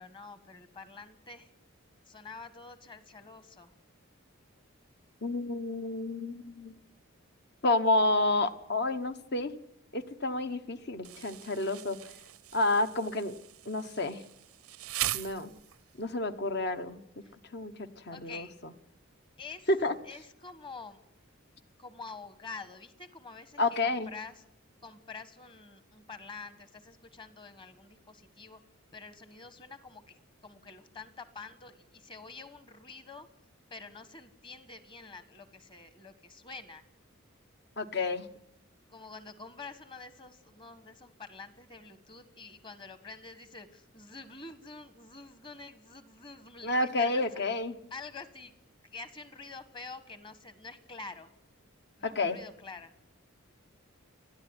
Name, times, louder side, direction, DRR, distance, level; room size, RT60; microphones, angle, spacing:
voice 1, 0.0-1.5 2.0-3.7 17.2-17.4 18.1-18.5 19.4-19.7 20.0-21.0 21.8-24.4 24.8-28.6 28.9-33.3 33.7-36.8 38.9-47.4 47.9-48.5 48.9-51.3 52.0-52.9, left 4 dB, 25° left, 12 dB, 1.4 m, -47 dB
voice 2, 5.2-6.8 7.6-9.5 9.9-12.0 12.5-13.3 13.6-14.2 15.1-15.5 16.0-17.0 17.5-18.5 19.7-19.9 23.6-24.1 37.8-38.3 46.6-47.7 52.0-52.4, left 2 dB, 50° left, 10 dB, 1.2 m, -30 dB
Insect, 11.0-16.0, right 14 dB, 90° right, 0.7 m, -40 dB
30.0 x 10.5 x 9.7 m, 0.83 s
head